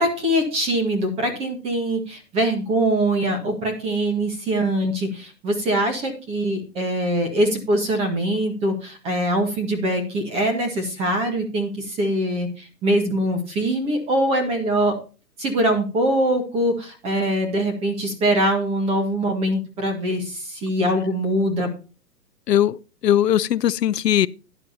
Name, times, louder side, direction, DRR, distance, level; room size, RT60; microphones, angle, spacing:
voice 1, 0.0-15.0 15.4-21.7, right 1 dB, 10° right, 1.7 m, -23 dB
voice 2, 22.5-24.3, left 11 dB, 75° left, 0.7 m, -19 dB
12.0 x 10.5 x 2.7 m
hypercardioid pair, 165°, 48 cm